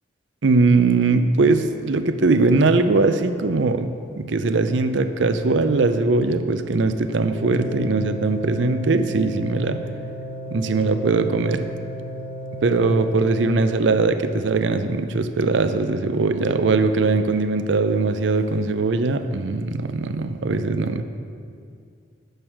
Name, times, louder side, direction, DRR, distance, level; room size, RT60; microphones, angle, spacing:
voice 1, 0.4-9.8 10.5-11.7 12.6-21.0, right 3 dB, 90° right, 10 dB, 0.6 m, -20 dB
sound 1, 7.3-13.5, equal, 65° right, 2.1 m, -34 dB
9.4 x 6.4 x 6.0 m, 2.3 s
head